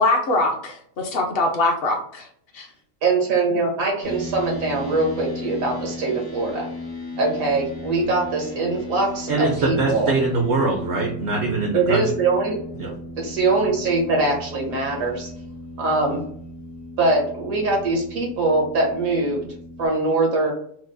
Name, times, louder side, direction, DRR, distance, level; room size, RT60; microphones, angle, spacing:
voice 1, 0.0-2.3 2.5-2.7, left 2 dB, 60° left, 3 dB, 0.7 m, -22 dB
voice 2, 3.0-6.7 7.2-10.1 11.7-12.6 13.2-15.3 15.8-16.2 17.0-19.5 19.8-20.5, right 3 dB, 85° right, 0 dB, 1.4 m, -22 dB
sound 1, 4.0-19.9, left 1 dB, 75° left, 1.7 m, -36 dB
voice 3, 9.3-12.1 12.7-12.9, right 3 dB, 65° right, 2 dB, 0.8 m, -23 dB
4.5 x 2.0 x 2.5 m, 0.64 s
omnidirectional pair, 1.4 m